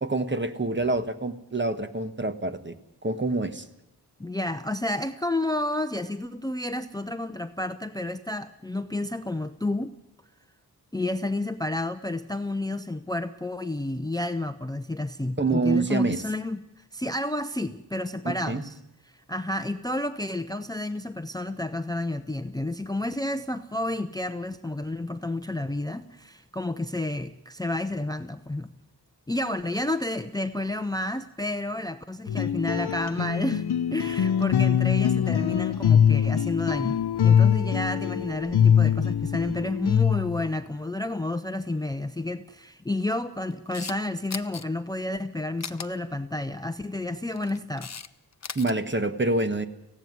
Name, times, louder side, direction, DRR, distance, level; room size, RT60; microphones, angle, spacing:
voice 1, 0.0-2.8 3.0-3.7 15.4-16.2 18.2-18.6 48.5-49.7, right 2 dB, 30° right, 9 dB, 1.3 m, -26 dB
voice 2, 4.2-9.9 10.9-16.6 16.9-18.8 19.1-28.7 29.3-47.9, left 1 dB, 10° left, 11 dB, 0.6 m, -30 dB
sound 1, 32.3-40.5, left 8 dB, 75° left, 0.8 m, -23 dB
Camera, 43.5-44.0 44.3-44.6 45.6-45.9 47.2-48.1 48.3-48.7, left 6 dB, 40° left, 0.8 m, -37 dB
17.0 x 16.0 x 9.5 m, 0.86 s
wide cardioid pair, 90°, 39 cm